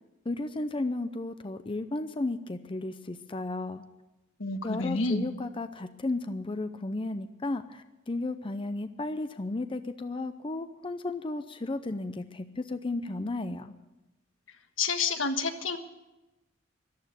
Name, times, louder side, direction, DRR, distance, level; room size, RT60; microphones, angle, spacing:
voice 1, 0.3-3.8 4.6-13.7, left 2 dB, 25° left, 10 dB, 0.6 m, -34 dB
voice 2, 4.4-5.3 14.8-15.8, left 4 dB, 85° left, 7 dB, 1.4 m, -29 dB
14.0 x 11.5 x 8.2 m, 1.0 s
head